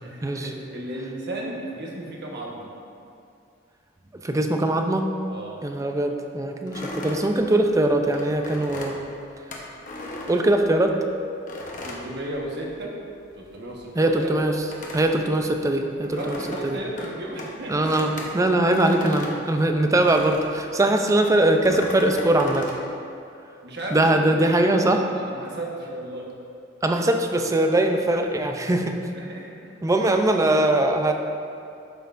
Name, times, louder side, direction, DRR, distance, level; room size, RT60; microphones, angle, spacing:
voice 1, 0.0-2.7 5.3-5.6 11.7-13.0 13.3-14.3 16.1-19.2 20.8-21.2 23.6-26.3 29.1-29.7, right 1 dB, 60° right, -2 dB, 1.2 m, -35 dB
voice 2, 4.2-5.1 5.6-9.0 10.2-11.0 14.0-14.5 14.9-16.8 17.7-22.7 23.9-25.0 26.8-29.0 29.8-31.1, right 1 dB, 15° right, 4 dB, 0.4 m, -21 dB
sound 1, 6.7-11.0 11.5-13.0 13.2-20.6 21.2-22.8, left 1 dB, 45° left, 0.9 m, -37 dB
11.5 x 5.6 x 2.5 m, 2.5 s
head